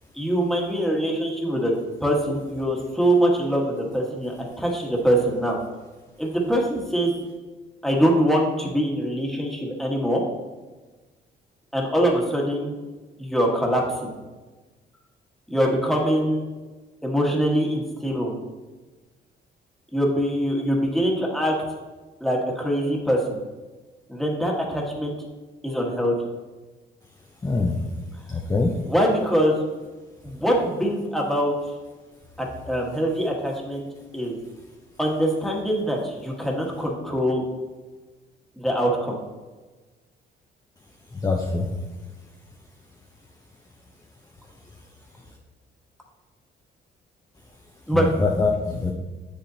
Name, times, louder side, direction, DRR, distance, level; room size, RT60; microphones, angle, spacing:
voice 1, 0.1-1.7 2.0-5.6 6.2-7.1 7.8-10.2 11.7-12.7 13.2-14.1 15.5-16.4 17.0-18.3 19.9-21.6 22.2-23.4 24.1-25.1 25.6-26.1 28.8-29.6 30.2-31.5 32.4-33.9 34.1-34.4 35.0-37.4 38.6-39.1 47.9-48.1, equal, ahead, -2 dB, 1.5 m, -23 dB
voice 2, 27.4-27.8 28.3-28.8 41.2-41.7 47.9-48.9, left 3 dB, 20° left, 0 dB, 0.7 m, -23 dB
7.2 x 6.7 x 2.8 m, 1.2 s
cardioid pair, 90°, 20 cm